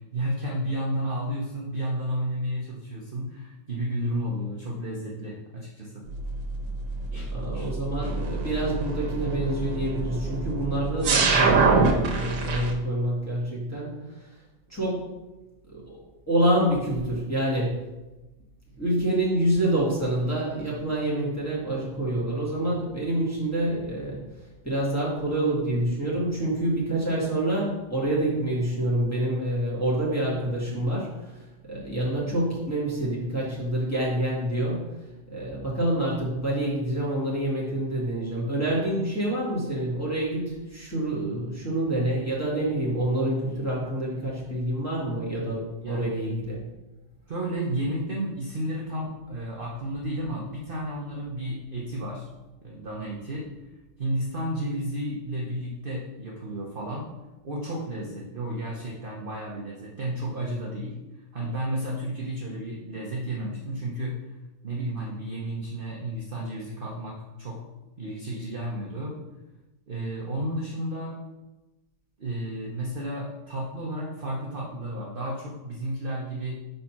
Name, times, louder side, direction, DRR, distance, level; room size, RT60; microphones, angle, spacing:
voice 1, 0.1-6.0 7.1-7.7 8.0-8.1 45.8-46.1 47.3-52.3 52.6-53.5 54.0-57.1 57.4-60.9 61.3-64.2 64.6-67.6 68.0-69.2 69.9-71.2 72.2-76.6, right 1 dB, 45° right, -3 dB, 0.7 m, -32 dB
sound 1, 6.1-12.7, right 4 dB, 70° right, 1.5 m, -25 dB
voice 2, 7.3-13.9 14.7-15.1 15.7-16.0 16.3-17.8 18.8-24.2 24.6-31.1 31.7-34.9 35.3-46.6, right 1 dB, 10° left, -6 dB, 1.7 m, -27 dB
5.4 x 4.0 x 5.8 m, 1.1 s
omnidirectional pair, 2.1 m